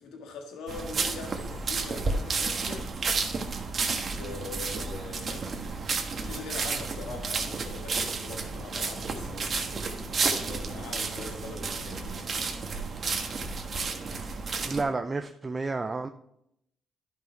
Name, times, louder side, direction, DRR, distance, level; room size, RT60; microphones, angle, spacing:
voice 1, 0.0-2.9 4.1-5.9 6.1-12.5, left 4 dB, 85° left, 1.7 m, -43 dB
sound 1, 0.7-14.8, right 4 dB, 45° right, 1.3 m, -31 dB
voice 2, 14.6-16.1, right 3 dB, 25° right, 0.5 m, -31 dB
11.5 x 5.7 x 4.6 m
cardioid pair, 90°, 0 cm